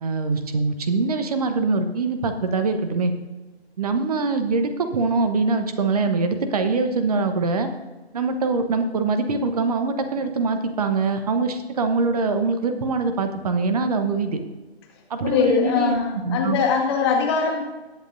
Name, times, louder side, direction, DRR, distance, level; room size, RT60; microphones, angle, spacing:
voice 1, 0.0-3.1 3.8-7.7 8.1-14.4 15.1-16.6, right 3 dB, 35° right, 8 dB, 1.1 m, -23 dB
voice 2, 15.2-17.6, left 5 dB, 25° left, 0 dB, 1.8 m, -21 dB
20.5 x 8.0 x 2.7 m, 1.2 s
figure-of-eight pair, 140°, 32 cm